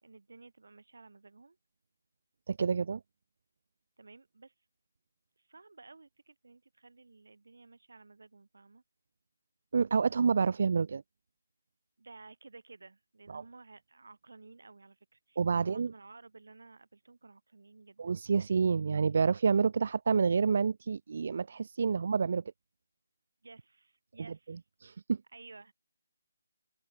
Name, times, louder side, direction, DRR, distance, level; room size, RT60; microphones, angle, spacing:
voice 1, 0.0-1.6 4.0-4.5 5.4-8.8 12.0-18.0 21.9-22.0 23.4-24.6 25.3-25.7, right 3 dB, 75° right, 4.0 m, -54 dB
voice 2, 2.5-3.0 9.7-11.0 13.3-13.4 15.4-15.9 18.0-22.4 24.8-25.2, right 5 dB, 45° right, 0.3 m, -28 dB
open air
hypercardioid pair, 170°, 0 cm